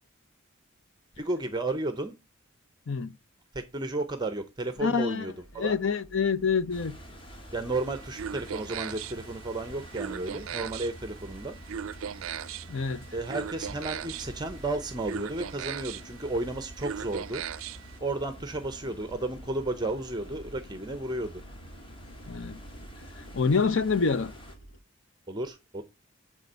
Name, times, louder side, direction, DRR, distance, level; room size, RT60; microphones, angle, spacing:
voice 1, 1.2-2.2 3.5-5.8 7.5-11.6 13.1-17.4 18.0-21.4 25.3-25.8, right 2 dB, 20° right, 0.6 m, -33 dB
voice 2, 2.9-3.2 4.8-5.3 5.6-6.9 12.7-13.0 22.3-22.6 23.3-24.3, left 5 dB, 60° left, 0.6 m, -26 dB
sound 1, 5.4-12.5 12.8-24.8, right 1 dB, 85° left, 1.5 m, -52 dB
sound 2, 6.7-24.6, equal, 25° left, 1.4 m, -48 dB
sound 3, 7.7-18.0, right 8 dB, 75° right, 0.4 m, -39 dB
9.4 x 3.6 x 5.4 m
head